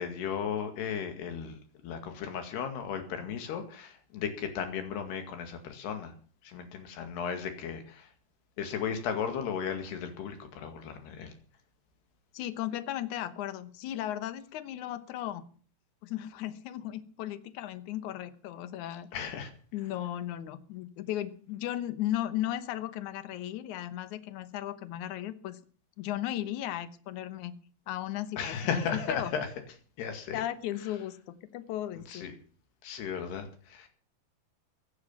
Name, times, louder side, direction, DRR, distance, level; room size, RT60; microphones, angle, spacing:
voice 1, 0.0-1.6 1.8-6.1 6.4-8.1 8.6-11.3 19.1-19.5 28.4-29.5 30.0-30.4 32.1-32.3 32.8-33.9, left 7 dB, 80° left, 7 dB, 4.2 m, -35 dB
voice 2, 12.3-15.5 16.0-19.1 19.7-25.6 26.0-27.6 27.9-29.3 30.3-32.3, left 13 dB, 65° left, 12 dB, 2.0 m, -36 dB
16.0 x 9.9 x 7.3 m, 0.43 s
omnidirectional pair, 4.6 m